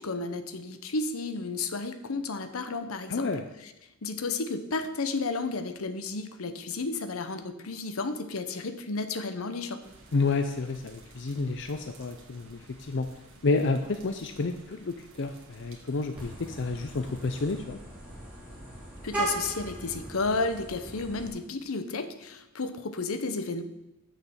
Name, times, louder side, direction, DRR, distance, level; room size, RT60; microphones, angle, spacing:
voice 1, 0.0-3.3 4.0-9.8 19.0-23.6, left 3 dB, 80° left, 9 dB, 0.9 m, -32 dB
voice 2, 3.1-3.4 10.1-13.1 13.4-17.8, left 3 dB, 55° left, 7 dB, 0.6 m, -30 dB
sound 1, 9.8-17.6, right 2 dB, 65° right, 1.7 m, -54 dB
Vehicle horn car horn honking, 16.2-21.3, right 2 dB, 5° right, 3.2 m, -38 dB
6.8 x 6.5 x 7.2 m, 0.92 s
head